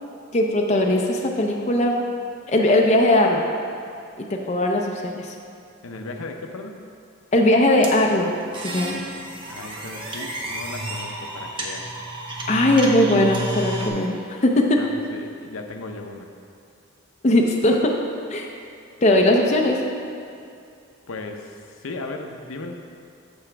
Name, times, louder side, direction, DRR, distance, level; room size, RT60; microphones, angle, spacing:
voice 1, 0.3-2.0 2.5-3.5 4.2-5.3 7.3-8.3 8.6-9.0 12.5-14.8 17.2-17.9 18.3-18.5 19.0-19.8, left 1 dB, 35° left, 1 dB, 0.5 m, -19 dB
voice 2, 5.8-6.7 9.5-11.8 14.8-16.3 21.1-22.8, left 2 dB, 75° left, 4 dB, 0.6 m, -36 dB
sound 1, 7.8-13.9, right 1 dB, 25° right, 0.7 m, -31 dB
13.0 x 4.9 x 3.4 m, 2.4 s
head